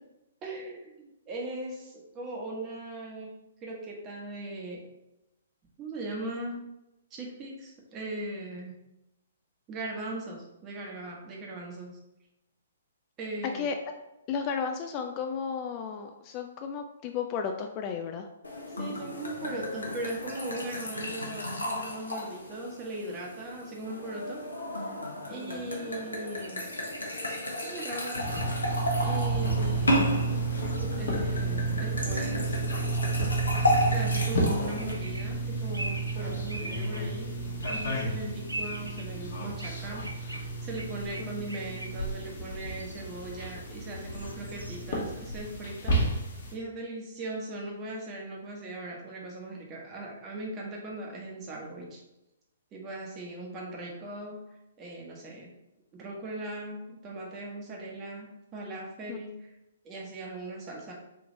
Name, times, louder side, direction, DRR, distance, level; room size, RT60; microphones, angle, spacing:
voice 1, 0.4-3.3 3.6-4.8 5.8-6.6 7.1-8.8 9.7-12.0 13.2-13.7 18.8-24.4 24.8-25.0 25.3-26.7 27.6-28.3 29.0-30.1 30.9-32.6 33.9-37.3 37.7-52.0 52.7-54.4 54.8-55.5 55.9-59.5 59.8-60.9, right 2 dB, 25° right, -1 dB, 1.1 m, -39 dB
voice 2, 14.3-18.3 25.3-25.7 41.2-41.3 59.1-59.2, left 6 dB, 30° left, 5 dB, 0.3 m, -34 dB
sound 1, 18.4-34.9, left 1 dB, 75° left, 0.9 m, -33 dB
sound 2, 26.4-27.2 27.8-27.9 28.3-28.7 29.4-29.6 29.8-30.1 30.7-31.1 32.0-32.2 33.4-34.2 34.7-35.2 35.7-37.0 37.6-38.1 38.5-39.0 39.6-39.7 40.0-42.1 42.6-43.0 44.1-44.8, right 1 dB, 90° right, 0.5 m, -41 dB
sound 3, 28.1-46.5, right 3 dB, 55° left, 1.2 m, -31 dB
3.5 x 2.9 x 3.8 m, 0.92 s
figure-of-eight pair, 120°, 0 cm